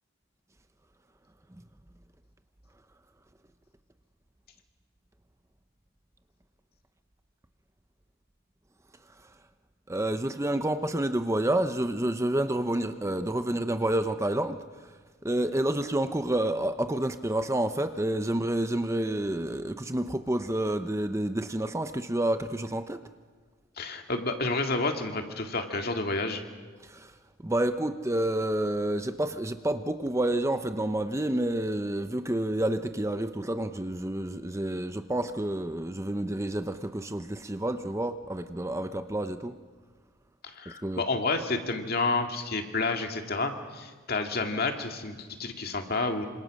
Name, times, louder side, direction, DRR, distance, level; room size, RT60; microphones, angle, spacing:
voice 1, 9.9-14.6 15.2-23.0 26.8-27.1 27.4-39.5 40.8-41.0, right 1 dB, 15° right, 9 dB, 0.7 m, -29 dB
voice 2, 23.8-26.4 40.4-46.3, left 3 dB, 50° left, 4 dB, 2.2 m, -30 dB
27.0 x 26.5 x 6.5 m, 1.5 s
head